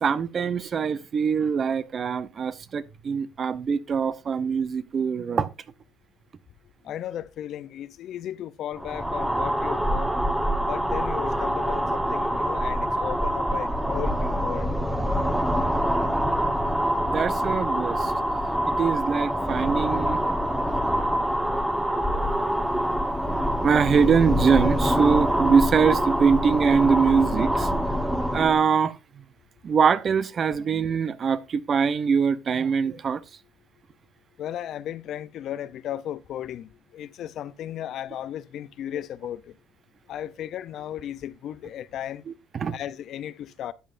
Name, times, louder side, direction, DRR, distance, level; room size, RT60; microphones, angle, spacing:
voice 1, 0.0-5.5 17.1-18.1 18.8-20.2 20.9-21.0 21.5-21.6 22.1-22.7 23.0-23.1 23.6-27.7 28.3-29.2 29.6-33.2 42.3-42.7, right 6 dB, 45° right, 0.7 m, -23 dB
voice 2, 6.8-10.1 10.7-14.7 34.4-39.5 40.1-42.2 42.7-43.7, left 11 dB, 60° left, 0.5 m, -35 dB
sound 1, 8.8-28.6, equal, 5° right, 1.1 m, -25 dB
12.5 x 8.2 x 2.5 m
supercardioid pair, 80°, 0 cm